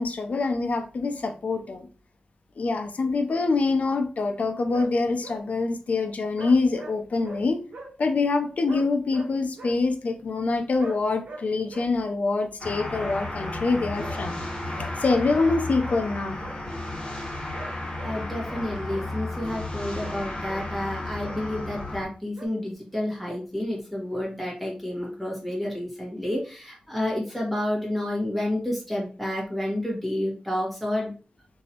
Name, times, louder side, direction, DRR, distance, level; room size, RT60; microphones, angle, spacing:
voice 1, 0.0-1.9 2.6-7.6 8.0-14.4 15.0-16.4, left 3 dB, 65° left, 7 dB, 0.5 m, -25 dB
sound 1, 4.7-4.9 5.2-5.4 6.4-7.0 7.2-7.4 7.7-7.9 8.7-9.8 10.8-11.0 11.2-11.4 11.7-11.9 13.0-13.2 14.0-14.2 14.7-14.9 15.4-15.6 15.8-16.0 16.4-16.6 17.5-18.1 18.4-19.1 20.0-20.2 20.5-20.7 21.2-21.4 22.4-22.5, right 2 dB, 85° right, 0.7 m, -41 dB
sound 2, 12.6-22.0, left 2 dB, 40° left, 1.5 m, -33 dB
voice 2, 18.0-31.1, left 1 dB, ahead, -3 dB, 1.5 m, -30 dB
3.0 x 2.7 x 2.8 m, 0.36 s
cardioid pair, 60°, 3 cm